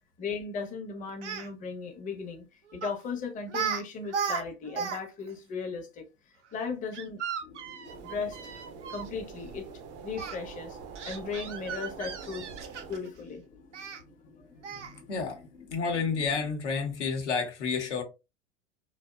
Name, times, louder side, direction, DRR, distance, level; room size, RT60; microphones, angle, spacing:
voice 1, 0.2-6.1 6.5-7.2 7.9-8.4 8.9-9.7 10.0-10.8 11.0-12.5 12.9-13.4 14.4-14.5 14.7-15.2, left 5 dB, 25° left, 0.6 m, -37 dB
Speech, 1.1-1.5 2.8-3.0 3.5-3.8 4.1-5.0 5.3-5.4 6.9-9.1 10.2-10.3 11.0-13.1 13.7-14.0 14.6-15.0, right 7 dB, 85° right, 0.6 m, -35 dB
sound 1, 7.4-16.5, left 4 dB, 55° left, 0.9 m, -55 dB
sound 2, 7.8-13.0, right 6 dB, 35° right, 0.4 m, -45 dB
voice 2, 15.7-18.0, left 5 dB, 80° left, 0.8 m, -30 dB
2.7 x 2.1 x 2.2 m
hypercardioid pair, 85°, 35 cm